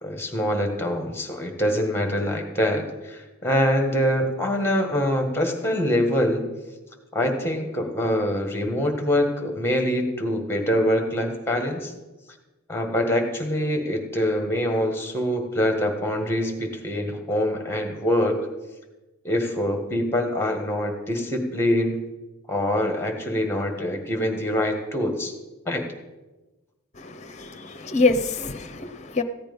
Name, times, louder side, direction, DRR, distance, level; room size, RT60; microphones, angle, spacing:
voice 1, 0.0-6.5 7.1-11.9 12.7-18.3 19.2-22.0 22.5-25.3 25.7-25.8, equal, 10° left, 4 dB, 1.6 m, -24 dB
voice 2, 27.0-29.2, left 3 dB, 30° left, 9 dB, 0.8 m, -25 dB
15.0 x 8.8 x 5.3 m, 1.1 s
head